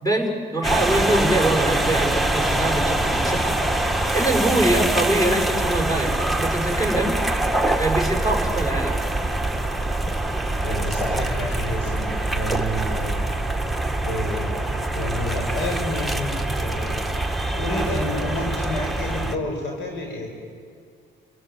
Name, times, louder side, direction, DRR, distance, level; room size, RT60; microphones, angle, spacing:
voice 1, 0.0-3.5 4.1-7.1 7.8-9.0, right 1 dB, 15° left, 2 dB, 5.9 m, -23 dB
sound 1, 0.6-19.4, right 1 dB, ahead, 1.4 m, -24 dB
voice 2, 10.6-13.2 14.0-17.2 17.5-20.3, left 1 dB, 75° left, 0 dB, 5.6 m, -30 dB
28.5 x 17.0 x 9.7 m, 2.2 s
cardioid pair, 90°, 20 cm